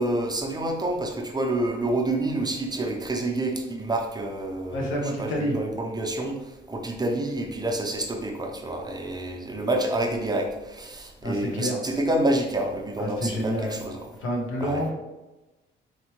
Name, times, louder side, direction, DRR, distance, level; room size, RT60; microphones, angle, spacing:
voice 1, 0.0-4.9 5.2-6.4 6.7-14.0 14.6-14.8, right 1 dB, 20° right, 2 dB, 0.7 m, -28 dB
voice 2, 4.7-5.6 11.2-11.8 13.0-13.8 14.1-14.9, equal, 80° left, -1 dB, 1.2 m, -28 dB
4.3 x 3.3 x 3.1 m, 1.1 s
cardioid pair, 90°, 20 cm